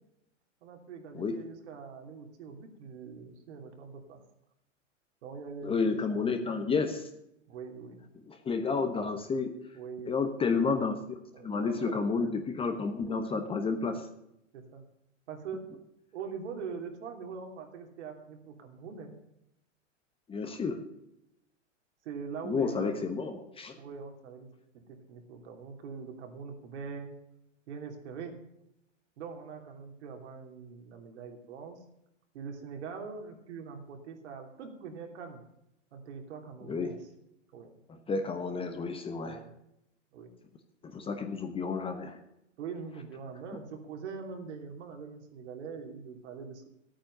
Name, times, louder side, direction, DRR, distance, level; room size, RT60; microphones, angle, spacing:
voice 1, 0.6-4.2 5.2-6.3 7.5-8.0 9.7-10.1 11.3-12.4 14.5-14.8 15.3-15.6 16.1-19.1 22.0-23.1 23.7-24.5 24.9-27.1 27.7-28.4 29.2-31.8 32.3-35.4 35.9-37.0 37.5-37.7 39.2-39.5 40.1-40.3 41.2-41.3 42.6-46.7, right 5 dB, 60° right, 3 dB, 3.0 m, -43 dB
voice 2, 5.6-7.1 8.3-9.5 10.1-11.0 11.4-14.0 20.3-20.8 22.4-23.8 36.6-36.9 37.9-39.4 40.8-42.2, left 4 dB, 15° left, 6 dB, 1.1 m, -31 dB
13.0 x 9.0 x 6.5 m, 0.81 s
hypercardioid pair, 120°, 38 cm